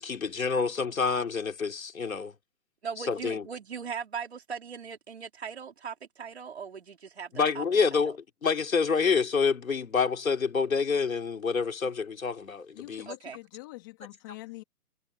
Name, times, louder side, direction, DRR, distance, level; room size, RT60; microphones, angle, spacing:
voice 1, 0.0-2.3 3.0-3.4 7.3-13.1, left 5 dB, 60° left, 3.9 m, -27 dB
voice 2, 2.8-7.6 7.9-8.0 13.1-13.4, right 6 dB, 40° right, 5.2 m, -39 dB
voice 3, 12.8-14.6, left 21 dB, 15° left, 3.4 m, -44 dB
hypercardioid pair, 175°, 47 cm